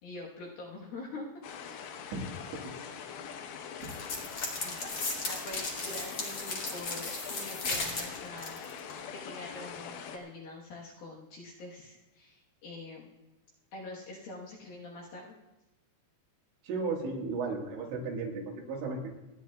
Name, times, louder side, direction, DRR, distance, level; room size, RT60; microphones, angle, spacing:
voice 1, 0.0-1.3 1.6-2.1 4.6-8.6 8.8-13.1 13.7-15.3, left 2 dB, 65° left, -4 dB, 2.7 m, -45 dB
sound 1, 1.4-10.2, left 7 dB, 85° left, 3.5 m, -43 dB
sound 2, 3.8-8.9, left 3 dB, 45° left, 1.6 m, -36 dB
voice 2, 16.6-19.1, right 4 dB, 75° right, 0 dB, 4.0 m, -34 dB
29.0 x 10.0 x 2.3 m, 1.0 s
omnidirectional pair, 5.5 m